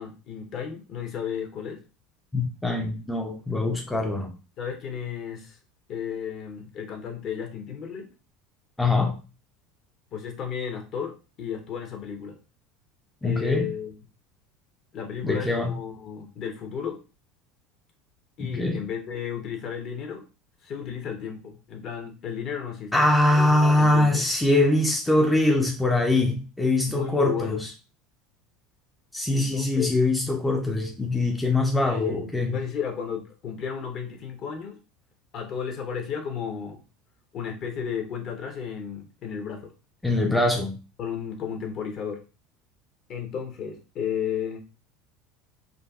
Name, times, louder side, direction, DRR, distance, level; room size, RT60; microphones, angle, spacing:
voice 1, 0.0-1.8 4.6-5.6 5.9-8.1 10.1-12.4 13.2-14.0 14.9-17.0 18.4-20.2 20.6-22.9 23.3-24.2 26.8-27.6 29.3-30.0 31.8-34.8 35.3-36.8 37.3-39.7 41.0-42.2 43.1-44.6, left 7 dB, 45° left, 0.8 m, -33 dB
voice 2, 2.3-4.3 8.8-9.2 13.2-13.7 15.2-15.7 18.4-18.8 22.9-27.7 29.1-32.6 40.0-40.8, left 2 dB, 10° left, 0.5 m, -23 dB
3.9 x 2.6 x 2.3 m
figure-of-eight pair, 70°, 0 cm